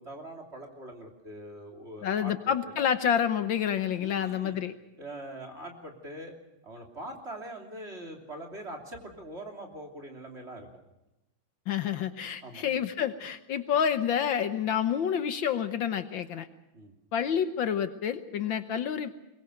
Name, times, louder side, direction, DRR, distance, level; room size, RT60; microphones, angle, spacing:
voice 1, 0.0-2.3 2.7-2.8 4.0-4.6 5.0-6.4 6.6-10.7 12.4-12.7 16.7-16.9, right 1 dB, 30° right, 2 dB, 3.4 m, -43 dB
voice 2, 2.0-4.7 11.7-16.5 17.1-19.1, left 8 dB, 65° left, 10 dB, 1.7 m, -28 dB
22.5 x 22.0 x 6.6 m, 0.96 s
omnidirectional pair, 2.3 m